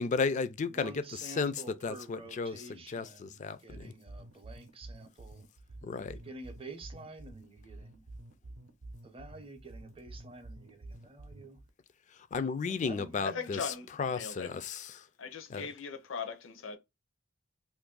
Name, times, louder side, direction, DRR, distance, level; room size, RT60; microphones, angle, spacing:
voice 1, 0.0-1.5 1.8-3.9 5.8-6.2 12.3-13.6 14.0-15.0 15.5-15.7, left 4 dB, 35° left, 0.3 m, -34 dB
voice 2, 0.7-5.4 6.1-8.0 9.0-11.6 12.8-13.5, right 2 dB, 25° right, 0.6 m, -49 dB
sound 1, 3.7-11.7, right 2 dB, 65° right, 0.6 m, -49 dB
voice 3, 13.2-14.6 15.2-16.8, left 5 dB, 70° left, 0.6 m, -39 dB
2.6 x 2.5 x 3.7 m
head